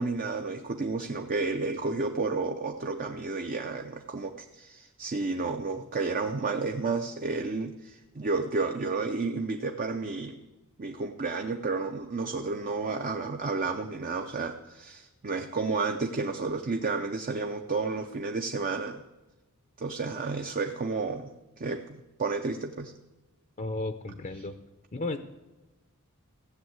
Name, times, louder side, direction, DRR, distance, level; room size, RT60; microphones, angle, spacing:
voice 1, 0.0-10.4 10.8-19.0 19.8-22.9, right 3 dB, 40° right, 5 dB, 0.6 m, -31 dB
voice 2, 23.6-24.6 24.9-25.2, left 2 dB, 35° left, 7 dB, 0.6 m, -33 dB
15.5 x 7.1 x 7.9 m, 1.1 s
head